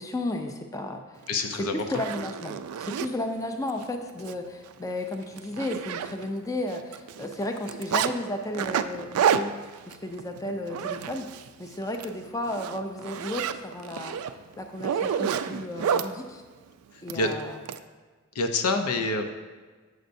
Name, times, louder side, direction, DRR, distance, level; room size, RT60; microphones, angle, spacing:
voice 1, 0.0-1.3 1.6-11.3 11.6-16.4 17.0-17.6, left 1 dB, 15° left, 5 dB, 0.4 m, -33 dB
voice 2, 1.3-1.8 16.9-17.3 18.3-19.3, left 2 dB, 90° left, 5 dB, 0.6 m, -27 dB
Zipper (clothing), 1.3-1.4 1.8-3.1 3.7-3.8 4.2-4.3 4.7-4.8 5.1-6.5 6.7-8.1 8.5-11.5 11.8-12.1 12.5-16.1 17.1-17.8, right 8 dB, 75° right, 0.3 m, -29 dB
8.0 x 6.5 x 2.6 m, 1.4 s
head